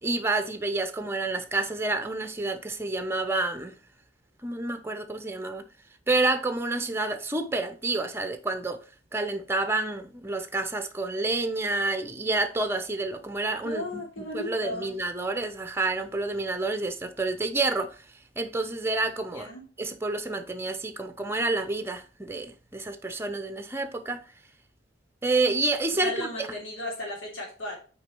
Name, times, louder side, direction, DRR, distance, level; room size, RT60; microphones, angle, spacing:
voice 1, 0.0-3.8 4.4-5.7 6.1-8.8 9.1-18.0 18.4-19.5 19.8-24.3 25.2-26.3, right 2 dB, 15° right, 0.7 m, -29 dB
voice 2, 13.6-14.9 19.3-19.7 25.9-27.8, left 1 dB, 90° left, 3.2 m, -35 dB
6.4 x 4.6 x 4.5 m
head